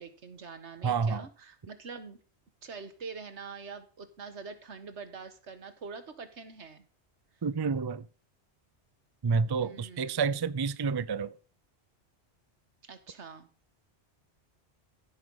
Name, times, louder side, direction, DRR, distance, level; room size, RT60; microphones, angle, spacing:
voice 1, 0.0-2.2 2.6-6.9 9.6-10.2 12.8-13.5, right 5 dB, 85° right, 1.7 m, -45 dB
voice 2, 0.8-1.3 7.4-8.1 9.2-11.3, right 5 dB, 35° right, 0.4 m, -29 dB
15.0 x 5.3 x 6.4 m
omnidirectional pair, 1.1 m